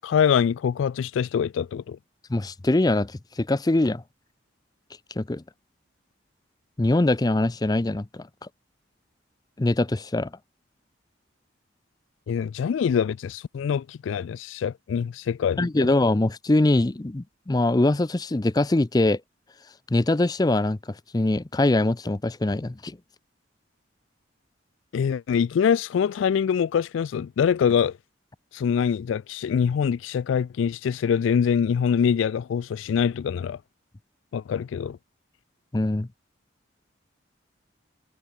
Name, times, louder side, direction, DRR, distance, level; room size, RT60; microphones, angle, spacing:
voice 1, 0.0-2.0 12.3-15.9 24.9-28.0 28.5-33.6 34.3-35.0, left 7 dB, 85° left, 0.3 m, -24 dB
voice 2, 2.3-4.0 5.2-5.4 6.8-8.3 9.6-10.3 15.6-19.2 19.9-23.0 35.7-36.1, left 2 dB, 20° left, 0.5 m, -23 dB
head